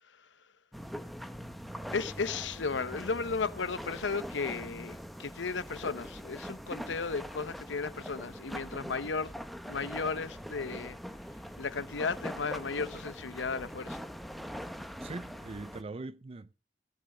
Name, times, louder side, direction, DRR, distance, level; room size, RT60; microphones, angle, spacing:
sound 1, 0.7-15.8, equal, ahead, 0.9 m, -43 dB
voice 1, 1.9-9.3 9.7-11.0 11.6-14.0, left 4 dB, 90° left, 0.8 m, -34 dB
voice 2, 15.0-16.5, right 3 dB, 35° right, 0.5 m, -41 dB
15.0 x 8.8 x 4.9 m
head